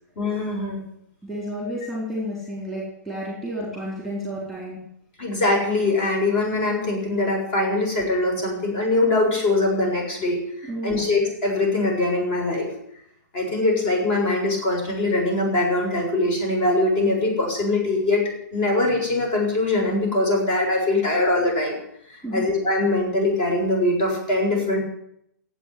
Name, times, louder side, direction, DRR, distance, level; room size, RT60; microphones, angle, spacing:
voice 1, 0.2-0.8 5.2-12.7 13.3-21.8 22.1-24.8, left 2 dB, 35° left, 1 dB, 7.1 m, -22 dB
voice 2, 1.2-4.8 10.7-11.0 22.2-22.5, equal, 5° left, -6 dB, 4.1 m, -31 dB
15.5 x 8.6 x 9.4 m, 0.75 s
hypercardioid pair, 155°, 10 cm